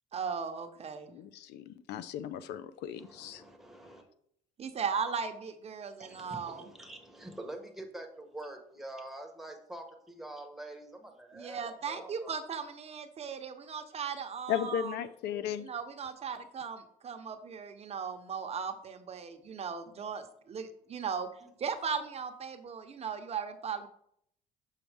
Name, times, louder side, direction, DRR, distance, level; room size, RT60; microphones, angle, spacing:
voice 1, 0.1-1.2 4.6-6.7 11.3-14.9 15.6-21.3 21.6-23.9, right 6 dB, 40° right, 7 dB, 0.8 m, -37 dB
voice 2, 1.1-3.4 14.5-15.7, left 10 dB, 80° left, 13 dB, 0.5 m, -36 dB
voice 3, 3.0-4.0 6.0-12.3, right 1 dB, ahead, 3 dB, 1.2 m, -46 dB
7.2 x 5.6 x 3.4 m, 0.69 s
cardioid pair, 110°, 17 cm